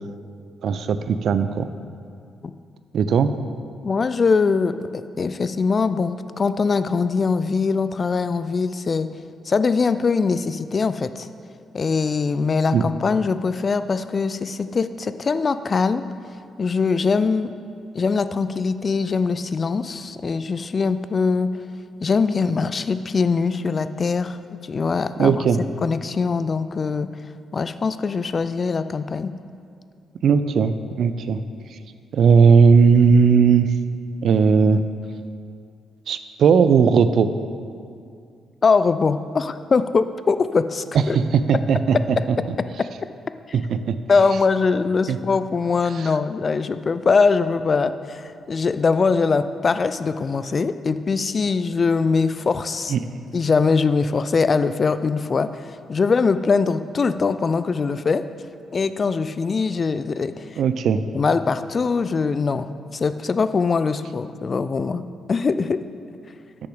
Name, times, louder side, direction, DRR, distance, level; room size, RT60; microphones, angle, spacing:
voice 1, 0.6-1.7 2.9-3.3 12.7-12.8 25.2-25.6 30.2-31.4 32.1-33.7 34.2-34.8 36.1-37.3 41.1-42.2 43.5-43.6 43.9-44.0 45.1-45.2 52.9-53.0 60.6-61.0, right 6 dB, 70° right, 11 dB, 0.3 m, -17 dB
voice 2, 3.8-9.1 9.5-11.3 11.7-16.0 16.6-17.5 17.9-21.5 22.0-27.1 27.5-29.3 38.6-41.2 42.2-42.3 44.1-53.0 53.3-58.2 58.7-60.6 61.1-65.0 65.3-65.8, left 4 dB, 45° left, 12 dB, 0.3 m, -22 dB
6.3 x 5.8 x 4.9 m, 2.4 s
supercardioid pair, 55°, 0 cm